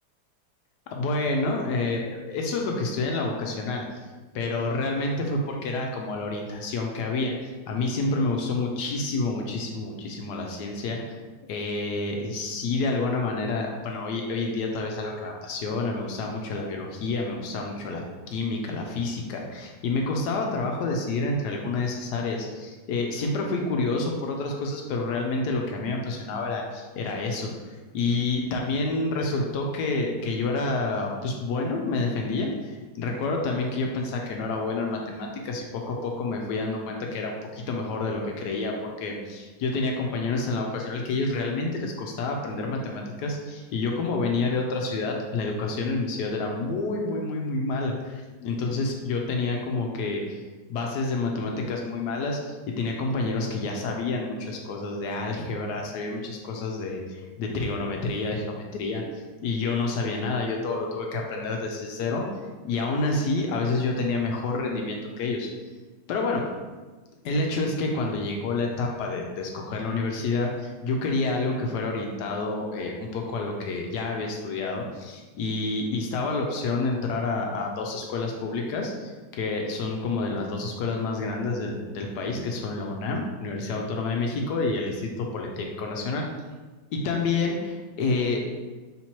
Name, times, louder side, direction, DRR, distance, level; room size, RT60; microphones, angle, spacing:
voice 1, 0.9-3.8 4.3-11.1 11.5-18.0 18.3-50.4 50.7-59.0 59.4-65.5 66.1-66.5 67.2-86.3 86.9-88.5, left 3 dB, 80° left, 1 dB, 1.2 m, -28 dB
3.8 x 2.9 x 4.3 m, 1.3 s
omnidirectional pair, 1.8 m